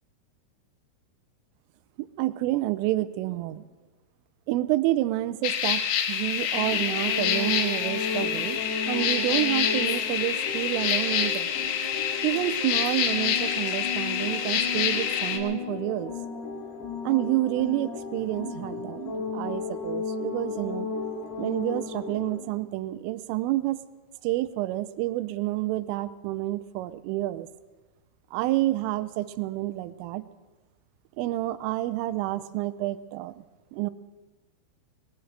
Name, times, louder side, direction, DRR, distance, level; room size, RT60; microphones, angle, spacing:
voice 1, 2.0-3.6 4.5-5.8 6.1-8.6 8.9-11.5 12.2-16.1 17.0-20.9 21.4-23.8 24.2-27.5 28.3-30.2 31.2-33.3 33.7-33.9, right 16 dB, 85° right, 14 dB, 3.2 m, -29 dB
sound 1, 5.4-15.4, left 9 dB, 85° left, 3.6 m, -27 dB
sound 2, 6.5-22.4, left 4 dB, 60° left, 4.2 m, -34 dB
22.5 x 19.0 x 3.3 m, 1.2 s
omnidirectional pair, 5.7 m